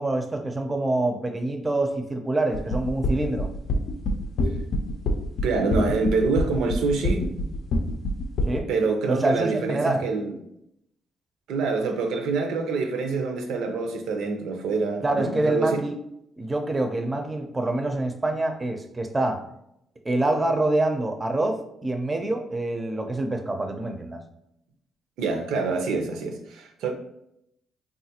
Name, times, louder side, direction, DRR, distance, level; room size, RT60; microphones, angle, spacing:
voice 1, 0.0-3.5 8.5-8.7 9.1-10.0 15.0-16.0 16.4-19.4 20.0-24.2, right 2 dB, 20° right, 5 dB, 0.5 m, -26 dB
sound 1, 2.5-8.6, left 1 dB, 70° left, 0.5 m, -26 dB
voice 2, 5.4-7.2 8.7-10.3 11.5-15.8 25.2-26.9, right 3 dB, 85° right, 4 dB, 0.5 m, -26 dB
3.7 x 2.4 x 2.8 m, 0.77 s
cardioid pair, 90°, 0 cm